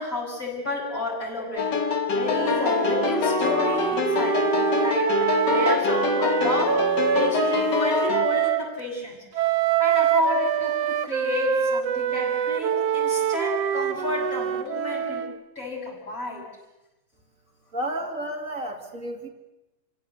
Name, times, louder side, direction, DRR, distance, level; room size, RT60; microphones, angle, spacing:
voice 1, 0.0-1.7 2.1-4.5 4.8-6.8 7.1-9.5 9.8-15.2 15.6-16.4, left 3 dB, 25° left, -2 dB, 7.7 m, -30 dB
sound 1, 1.6-8.3, left 5 dB, 50° left, 1.3 m, -25 dB
Wind instrument woodwind instrument, 2.2-8.6 9.3-15.4, right 9 dB, 65° right, 1.8 m, -25 dB
voice 2, 17.7-19.3, right 1 dB, 25° right, 3 dB, 2.9 m, -31 dB
28.5 x 17.0 x 8.2 m, 1.0 s
omnidirectional pair, 3.6 m